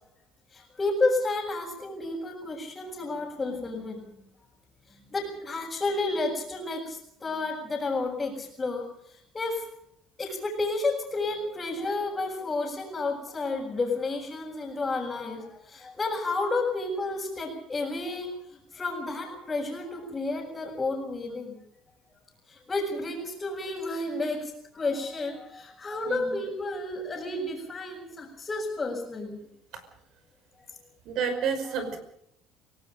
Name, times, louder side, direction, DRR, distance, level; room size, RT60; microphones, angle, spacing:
voice 1, 0.5-4.0 4.9-9.7 10.2-21.6 22.5-29.4 31.7-31.8, left 2 dB, 15° left, -5 dB, 6.1 m, -31 dB
voice 2, 26.1-26.4 29.7-29.8 31.1-32.0, right 6 dB, 60° right, 9 dB, 5.5 m, -30 dB
29.5 x 18.5 x 5.3 m, 0.75 s
cardioid pair, 145°, 0 cm